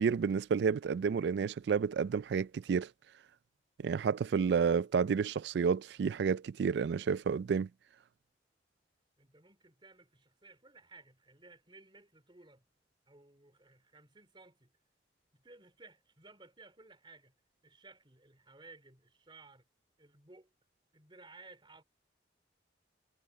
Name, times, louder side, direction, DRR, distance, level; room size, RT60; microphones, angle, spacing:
voice 1, 0.0-2.9 3.8-7.7, right 6 dB, 65° right, 0.3 m, -30 dB
voice 2, 9.2-12.6 13.1-14.7 15.3-17.3 17.6-19.7 20.0-20.5 20.9-21.8, right 3 dB, 25° right, 3.5 m, -57 dB
head